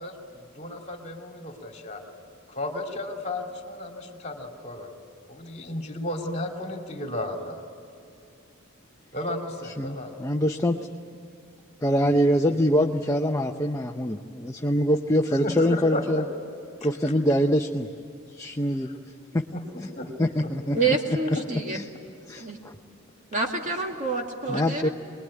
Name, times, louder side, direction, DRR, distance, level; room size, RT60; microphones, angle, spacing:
voice 1, 0.0-2.0 2.5-4.9 5.3-7.6 9.1-10.1 12.5-12.6 15.4-16.2 19.5-20.1 20.4-20.5 21.3-21.4, left 1 dB, 30° left, 2 dB, 2.8 m, -33 dB
voice 2, 9.6-10.8 11.8-16.2 16.8-17.9 18.3-18.9 19.3-19.4 19.8-19.9 20.2-20.8 21.7-21.8 22.3-22.7 24.5-24.9, equal, 15° left, 3 dB, 0.7 m, -24 dB
voice 3, 20.7-21.8 22.3-22.6 23.3-24.9, right 3 dB, 35° right, 2 dB, 2.3 m, -27 dB
25.0 x 21.0 x 9.8 m, 2.5 s
head